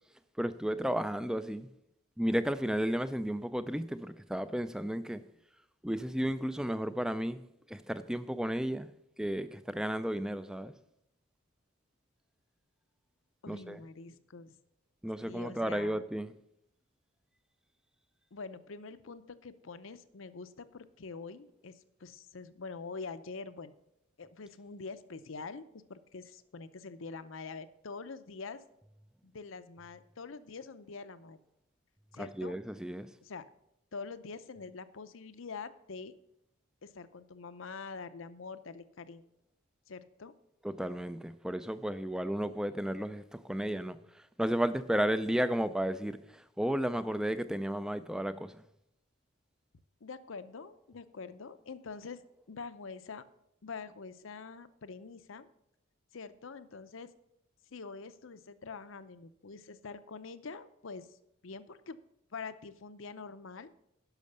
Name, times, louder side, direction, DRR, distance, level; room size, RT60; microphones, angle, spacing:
voice 1, 0.4-1.7 2.2-5.2 5.8-7.4 7.7-8.9 9.2-10.7 13.5-13.8 15.0-16.3 32.2-33.1 40.6-48.6, equal, 5° right, 0.3 m, -33 dB
voice 2, 13.4-14.6 15.2-16.0 18.3-23.7 24.2-28.6 29.2-31.4 32.1-32.6 33.2-33.4 33.9-36.1 36.8-39.2 39.9-40.3 50.0-52.2 52.5-53.3 53.6-55.5 56.1-57.1 57.7-61.2 61.4-62.0 62.3-63.7, left 4 dB, 70° left, 0.6 m, -45 dB
10.5 x 6.3 x 6.7 m
head